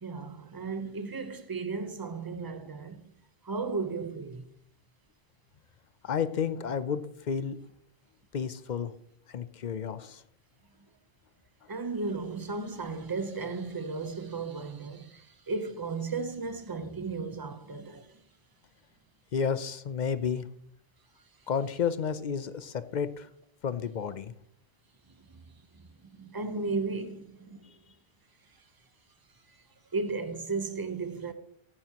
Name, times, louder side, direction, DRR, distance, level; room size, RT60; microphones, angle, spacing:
voice 1, 0.0-3.0 3.4-4.4 11.7-18.2 25.2-25.4 25.7-27.7 29.5-29.6 29.9-31.3, right 4 dB, 25° right, 0.7 m, -35 dB
voice 2, 6.0-7.6 8.3-8.9 9.3-10.2 19.3-20.5 21.5-23.3 23.6-24.3, left 7 dB, 55° left, 0.6 m, -31 dB
14.5 x 9.1 x 2.9 m
omnidirectional pair, 1.1 m